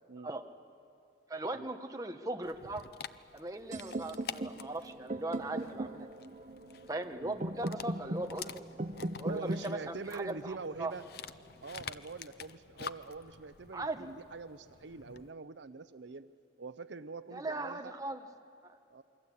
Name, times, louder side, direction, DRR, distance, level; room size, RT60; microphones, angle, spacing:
voice 1, 1.3-2.8 3.3-6.1 6.9-8.6 9.2-10.9 13.7-14.1 17.3-18.2 18.6-18.8, right 2 dB, 20° right, 5 dB, 1.2 m, -39 dB
Dog, 2.4-15.3, left 7 dB, 55° left, 0.6 m, -49 dB
sound 1, 3.7-11.6, right 1 dB, 40° right, 0.8 m, -40 dB
voice 2, 9.2-11.0 11.6-16.3 16.6-17.9 18.9-19.0, right 3 dB, 75° right, 13 dB, 0.7 m, -44 dB
28.0 x 23.0 x 8.5 m, 2.5 s
head